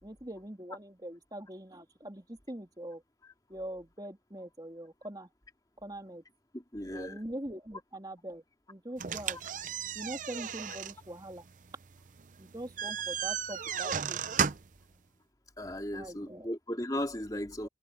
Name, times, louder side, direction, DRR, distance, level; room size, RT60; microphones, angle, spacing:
voice 1, 0.0-3.0 3.5-5.3 5.8-6.2 6.9-9.4 9.9-11.5 12.4-14.2 15.9-16.5 17.6-17.7, right 1 dB, 20° right, 2.8 m, -43 dB
voice 2, 6.5-7.2 15.6-17.7, left 1 dB, 20° left, 2.8 m, -36 dB
sound 1, 9.0-14.8, right 7 dB, 45° right, 0.6 m, -35 dB
head